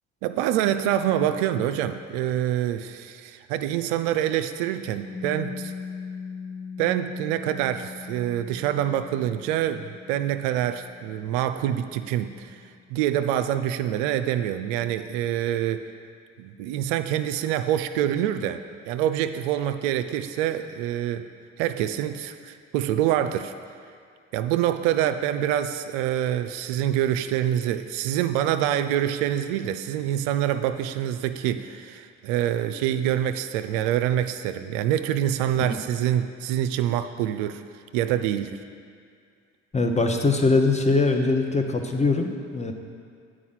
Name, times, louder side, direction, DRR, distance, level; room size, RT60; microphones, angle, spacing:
voice 1, 0.2-5.7 6.8-12.5 12.9-15.8 16.4-21.3 21.6-23.5 24.3-37.6 37.9-38.6, right 11 dB, 75° right, 10 dB, 0.5 m, -26 dB
Piano, 5.0-12.3, left 5 dB, 65° left, 2.3 m, -40 dB
voice 2, 39.7-42.7, left 3 dB, 20° left, 4 dB, 0.9 m, -22 dB
8.4 x 4.9 x 5.7 m, 2.2 s
hypercardioid pair, 55°, 34 cm